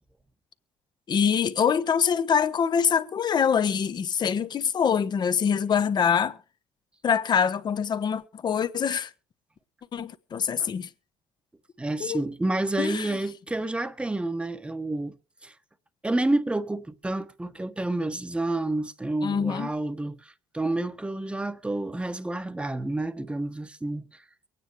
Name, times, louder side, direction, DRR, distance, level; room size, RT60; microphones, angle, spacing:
voice 1, 1.1-6.4 7.0-9.1 9.9-10.9 12.0-12.2 12.8-13.1 19.2-19.7, left 7 dB, 45° left, 1.2 m, -24 dB
voice 2, 11.8-15.1 15.4-15.5 16.0-24.2, right 2 dB, 10° right, 1.2 m, -29 dB
23.5 x 9.7 x 3.3 m
supercardioid pair, 85°, 10 cm